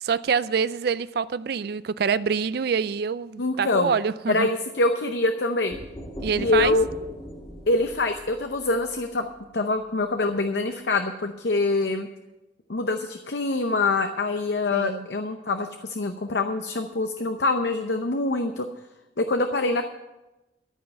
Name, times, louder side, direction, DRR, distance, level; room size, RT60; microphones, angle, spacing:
voice 1, 0.0-4.5 6.2-6.8 14.7-15.1, right 6 dB, 55° right, 17 dB, 0.4 m, -26 dB
voice 2, 3.4-3.9 4.3-5.8 6.4-6.9 7.7-9.3 9.5-12.1 12.7-18.7 19.2-19.8, left 2 dB, 65° left, 6 dB, 0.7 m, -25 dB
sound 1, 5.7-9.4, equal, 30° left, 2.0 m, -39 dB
13.5 x 5.5 x 8.9 m, 1.0 s
head